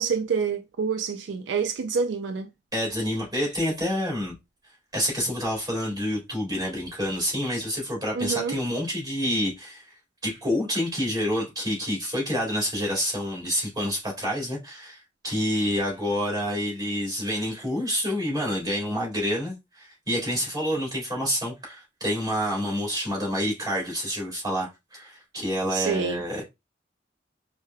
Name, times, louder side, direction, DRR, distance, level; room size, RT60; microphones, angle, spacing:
voice 1, 0.0-2.5 8.1-8.6 25.7-26.2, right 6 dB, 75° right, 0.4 m, -27 dB
voice 2, 2.7-4.4 4.9-9.9 10.2-26.4, equal, 20° right, 2.0 m, -28 dB
4.6 x 2.1 x 2.3 m
head